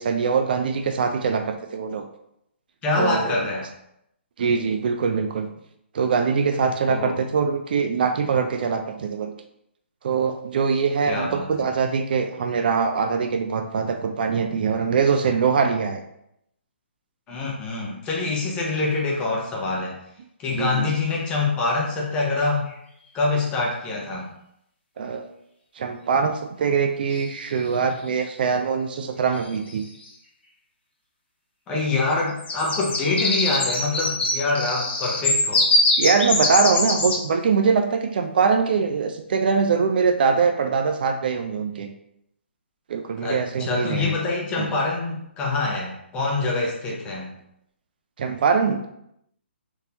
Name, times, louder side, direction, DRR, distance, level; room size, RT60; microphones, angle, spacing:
voice 1, 0.0-2.0 3.0-3.3 4.4-5.5 5.9-9.3 10.0-16.0 20.6-20.8 25.0-25.2 25.8-29.8 36.0-41.9 42.9-44.1 44.6-44.7 48.2-48.8, right 5 dB, 50° right, 6 dB, 0.4 m, -23 dB
voice 2, 2.8-3.7 6.9-7.1 11.1-11.7 17.3-20.0 20.4-22.7 23.1-24.3 31.7-35.7 43.2-47.3, left 3 dB, 15° left, -2 dB, 0.6 m, -25 dB
sound 1, 22.7-22.8 27.1-27.7 29.3-29.4 29.7-30.0 32.3-37.2, left 2 dB, 65° left, 1.2 m, -23 dB
3.7 x 2.6 x 2.8 m, 0.77 s
hypercardioid pair, 155°, 6 cm